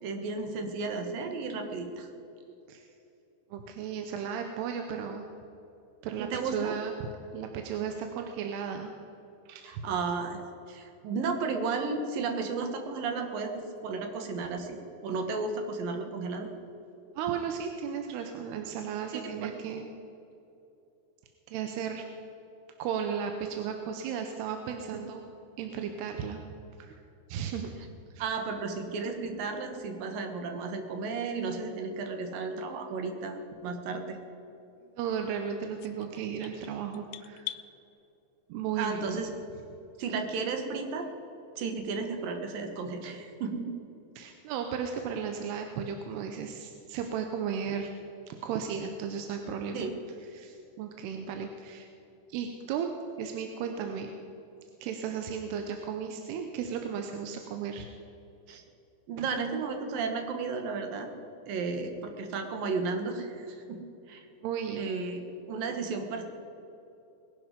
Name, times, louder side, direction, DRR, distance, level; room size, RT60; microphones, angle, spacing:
voice 1, 0.0-2.1 6.2-6.7 9.6-10.4 10.7-16.5 19.1-19.5 24.9-25.0 28.2-34.2 38.8-39.3 40.0-41.1 41.6-43.7 49.7-50.0 58.5-58.6 59.1-61.1 61.5-64.3 64.7-66.2, right 4 dB, 65° right, 5 dB, 2.9 m, -33 dB
voice 2, 3.5-5.3 6.0-6.9 7.3-8.9 9.5-9.7 17.2-19.9 21.5-22.0 22.8-25.2 25.6-26.4 26.8-26.9 27.3-27.7 28.1-28.2 35.0-37.5 38.5-39.0 44.2-47.9 48.3-49.9 50.3-51.9 52.3-52.9 53.2-54.1 54.8-57.9 64.4-64.9, right 7 dB, 85° right, 5 dB, 2.9 m, -35 dB
sound 1, 35.8-37.7, left 16 dB, 90° left, 2.0 m, -42 dB
20.0 x 11.0 x 5.2 m, 2.8 s
omnidirectional pair, 4.6 m